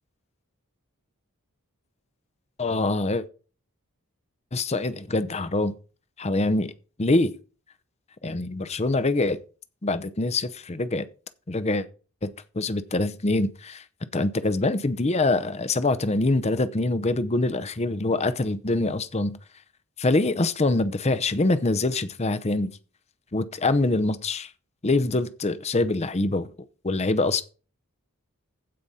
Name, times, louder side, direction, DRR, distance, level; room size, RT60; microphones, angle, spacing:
voice 1, 2.6-3.2 4.5-5.8 6.2-6.7 7.0-7.3 8.2-9.4 9.8-11.1 11.5-11.9 12.2-13.8 14.1-19.4 20.0-22.8 23.3-24.5 24.8-26.5 26.8-27.4, left 2 dB, 30° left, 0.7 m, -24 dB
15.5 x 5.2 x 4.2 m
head